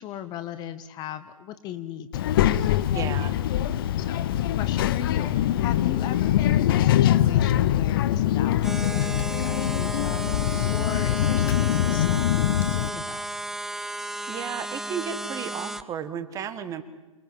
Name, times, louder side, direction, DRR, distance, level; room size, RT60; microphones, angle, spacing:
voice 1, 0.0-2.5 4.0-4.2 4.5-10.3 10.7-13.3, left 11 dB, 25° left, 12 dB, 1.1 m, -38 dB
Child speech kid speaking, 2.1-12.9, left 12 dB, 40° left, 0.9 m, -23 dB
voice 2, 2.9-3.4 13.9-16.8, right 8 dB, 20° right, 13 dB, 1.7 m, -34 dB
sound 1, 8.6-15.8, right 1 dB, ahead, 0.7 m, -33 dB
28.0 x 22.0 x 7.6 m, 1.2 s
figure-of-eight pair, 120°, 17 cm